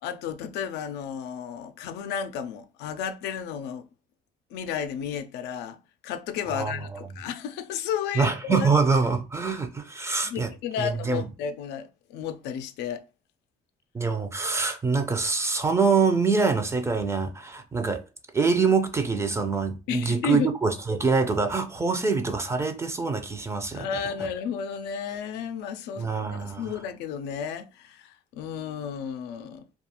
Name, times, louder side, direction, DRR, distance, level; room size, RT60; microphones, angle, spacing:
voice 1, 0.0-3.9 4.5-8.7 10.2-13.0 19.9-20.5 23.7-29.7, left 8 dB, 85° left, 0.4 m, -33 dB
voice 2, 8.2-10.5 10.8-11.2 13.9-18.0 18.3-23.9 26.0-26.6, right 4 dB, 15° right, 0.4 m, -25 dB
2.3 x 2.3 x 2.8 m
cardioid pair, 110°, 17 cm